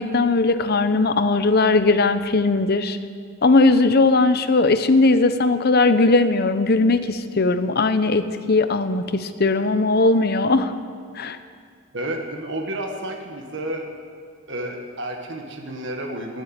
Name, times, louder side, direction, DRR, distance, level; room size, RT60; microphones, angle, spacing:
voice 1, 0.0-3.0 3.4-8.2 8.5-10.7 11.2-11.4, left 3 dB, 50° left, 11 dB, 0.8 m, -18 dB
voice 2, 11.9-13.9 14.5-16.4, right 1 dB, 60° right, 2 dB, 1.6 m, -31 dB
16.5 x 7.5 x 9.3 m, 2.2 s
head